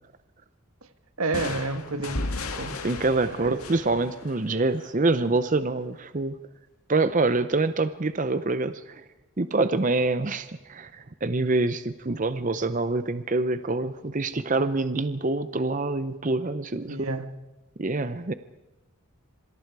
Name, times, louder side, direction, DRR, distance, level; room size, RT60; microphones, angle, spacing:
voice 1, 1.2-2.8 3.4-3.6 16.9-17.3, right 3 dB, 80° right, 1.5 m, -30 dB
sound 1, 1.3-5.0, left 2 dB, 80° left, 2.1 m, -35 dB
voice 2, 2.8-6.4 6.9-9.0 9.4-17.1 17.8-18.3, right 3 dB, 35° right, 0.6 m, -26 dB
26.5 x 24.5 x 4.8 m
head